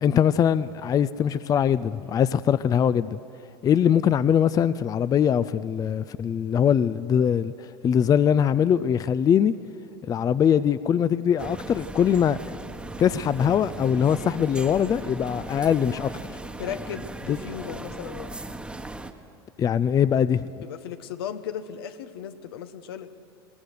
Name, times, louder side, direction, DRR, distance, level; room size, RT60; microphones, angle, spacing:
voice 1, 0.0-3.2 3.6-7.5 7.8-9.5 10.0-12.6 13.0-16.1 17.3-17.4 19.6-20.5, left 8 dB, 30° left, 0.5 m, -22 dB
sound 1, 11.4-19.1, right 2 dB, 10° right, 1.2 m, -37 dB
voice 2, 16.6-18.4 20.6-23.1, left 9 dB, 75° left, 1.0 m, -36 dB
21.5 x 18.5 x 6.6 m
hypercardioid pair, 90°, 13 cm